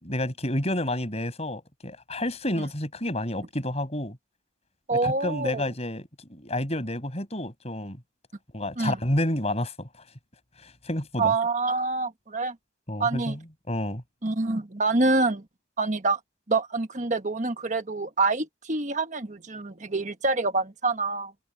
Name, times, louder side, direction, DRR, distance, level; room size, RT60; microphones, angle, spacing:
voice 1, 0.0-4.2 4.9-8.0 8.5-9.9 10.6-11.3 12.9-13.4 13.7-14.0, left 1 dB, 35° left, 5.7 m, -30 dB
voice 2, 4.9-5.6 8.8-9.0 11.2-12.6 13.0-13.4 14.2-15.4 15.8-16.2 16.5-21.3, right 3 dB, 40° right, 1.3 m, -26 dB
head